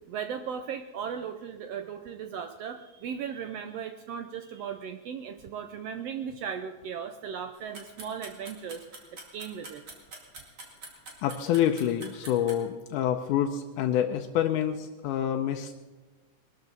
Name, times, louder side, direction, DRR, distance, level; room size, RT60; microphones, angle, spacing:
voice 1, 0.1-8.8 9.3-9.8, right 7 dB, 80° right, 7 dB, 1.4 m, -37 dB
sound 1, 7.5-12.6, right 2 dB, 35° right, 2.6 m, -44 dB
voice 2, 11.2-15.7, left 10 dB, 85° left, 4 dB, 2.2 m, -27 dB
21.5 x 13.0 x 4.0 m, 1.2 s
omnidirectional pair, 3.6 m